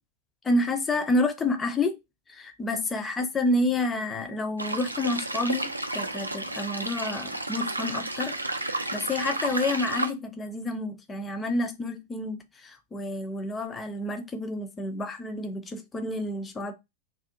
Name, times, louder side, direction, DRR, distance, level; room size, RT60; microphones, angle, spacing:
voice 1, 0.4-2.0 2.3-16.7, left 2 dB, 15° left, 0.5 m, -29 dB
sound 1, 4.6-10.1, right 2 dB, 85° right, 0.3 m, -32 dB
2.5 x 2.2 x 2.7 m
figure-of-eight pair, 90°, 0 cm